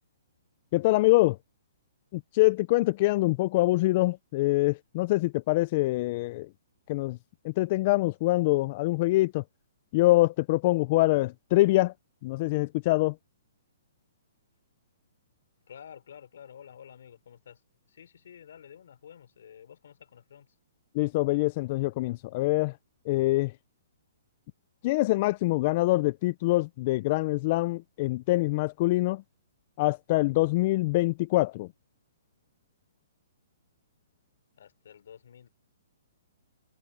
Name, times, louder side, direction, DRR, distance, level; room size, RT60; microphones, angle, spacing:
voice 1, 0.7-1.4 2.1-6.5 6.9-7.2 7.4-9.4 9.9-11.9 12.2-13.2 20.9-22.8 23.1-23.5 24.8-29.2 29.8-31.7, left 20 dB, 30° left, 0.3 m, -25 dB
voice 2, 15.7-17.6 17.9-20.6 34.6-35.5, left 8 dB, 65° left, 4.4 m, -50 dB
hypercardioid pair, 170°, 0 cm